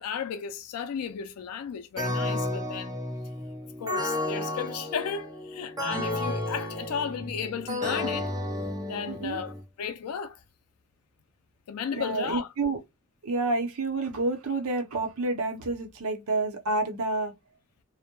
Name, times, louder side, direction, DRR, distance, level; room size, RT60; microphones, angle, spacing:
voice 1, 0.0-3.0 3.8-8.3 8.9-10.4 11.7-12.5, left 7 dB, 80° left, 0.4 m, -34 dB
sound 1, 2.0-9.6, left 1 dB, 15° right, 0.6 m, -32 dB
voice 2, 9.1-9.4 12.0-12.8 13.2-17.3, right 2 dB, 70° right, 0.7 m, -29 dB
2.1 x 2.1 x 2.9 m
head